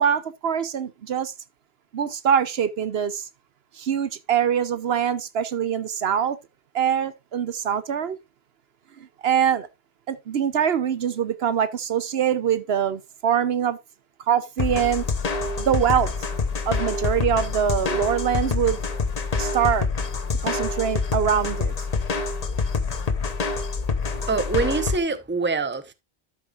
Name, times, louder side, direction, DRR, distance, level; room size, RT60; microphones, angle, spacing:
voice 1, 0.0-1.3 1.9-3.3 3.8-6.4 6.7-8.2 9.0-9.7 10.1-13.8 14.3-15.0 15.6-16.1 16.7-18.8 19.4-19.9 20.4-21.7, right 8 dB, 70° right, 1.0 m, -23 dB
sound 1, 14.6-25.0, left 4 dB, 40° left, 1.0 m, -26 dB
voice 2, 24.3-25.9, right 4 dB, 10° right, 0.8 m, -25 dB
12.5 x 6.8 x 2.4 m
omnidirectional pair, 1.1 m